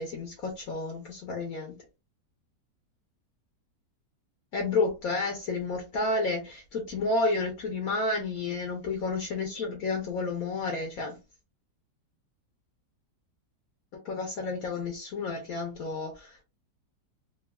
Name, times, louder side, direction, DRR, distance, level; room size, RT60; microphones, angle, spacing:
voice 1, 0.0-1.7 4.5-11.2 14.0-16.4, left 3 dB, 65° left, 1.1 m, -31 dB
3.5 x 2.4 x 2.2 m
omnidirectional pair, 1.9 m